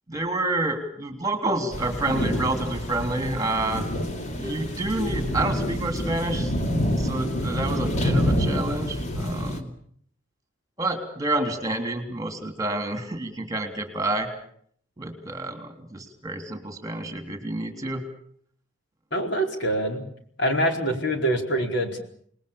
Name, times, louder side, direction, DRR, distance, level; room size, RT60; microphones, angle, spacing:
voice 1, 0.1-3.8 4.4-6.5 7.0-9.7 10.8-14.3 15.0-18.0, right 2 dB, 20° right, 6 dB, 3.3 m, -29 dB
sound 1, 1.7-9.6, equal, 35° left, 2.6 m, -27 dB
voice 2, 19.1-20.0 20.4-22.0, right 1 dB, 60° left, 3 dB, 4.5 m, -25 dB
28.5 x 20.5 x 7.1 m, 0.63 s
head